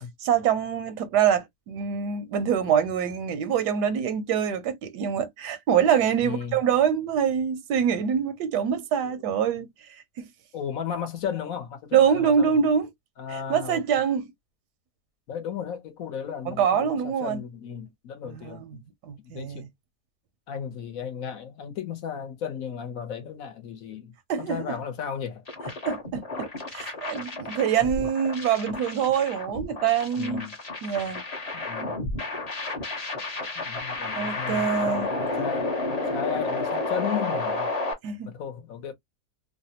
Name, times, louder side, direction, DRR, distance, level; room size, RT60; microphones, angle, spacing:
voice 1, 0.2-9.7 10.2-10.3 11.9-12.9 13.3-14.3 16.5-17.4 18.2-18.8 19.0-19.7 24.3-24.8 25.9-30.4 30.8-31.2 34.2-35.1 38.0-38.3, right 8 dB, 85° right, 1.2 m, -25 dB
voice 2, 6.2-6.6 9.0-9.1 10.5-12.7 13.2-14.0 15.3-18.8 19.2-19.7 20.5-25.4 30.2-30.6 31.5-32.1 33.6-37.7 38.3-38.9, left 8 dB, 60° left, 1.2 m, -35 dB
sound 1, 25.5-37.9, left 2 dB, 30° left, 0.8 m, -31 dB
3.2 x 2.1 x 2.7 m
omnidirectional pair, 1.7 m